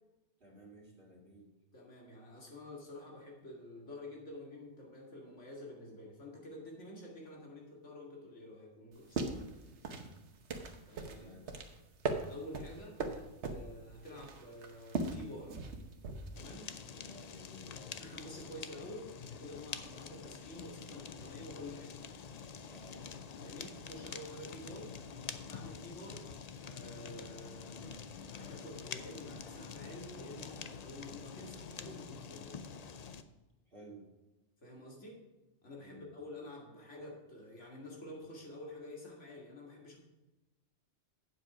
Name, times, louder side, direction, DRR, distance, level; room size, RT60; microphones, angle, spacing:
voice 1, 0.4-1.5 11.1-11.5 16.9-18.0 22.6-23.0 33.7-34.1 35.8-36.1, equal, 50° right, -3 dB, 2.5 m, -55 dB
voice 2, 1.7-9.5 10.9-11.3 12.3-15.6 16.4-16.7 17.9-21.9 23.4-24.9 25.4-26.3 26.6-28.0 28.3-32.6 34.6-35.2 35.6-40.0, left 1 dB, 90° left, -2 dB, 2.5 m, -49 dB
sound 1, 8.9-16.4, right 3 dB, 70° right, 1.3 m, -40 dB
Fire, 16.3-33.2, left 6 dB, 50° left, 0.5 m, -47 dB
8.4 x 7.5 x 4.9 m, 1.1 s
omnidirectional pair, 1.2 m